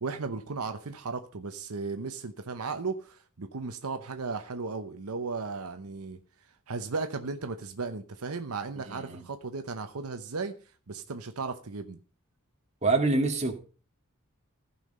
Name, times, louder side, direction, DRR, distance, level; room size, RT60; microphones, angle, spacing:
voice 1, 0.0-6.2 6.7-10.5 10.9-12.0, right 4 dB, 80° right, 0.9 m, -35 dB
voice 2, 8.8-9.2 12.8-13.5, right 3 dB, 30° right, 2.1 m, -26 dB
15.0 x 5.7 x 5.4 m
head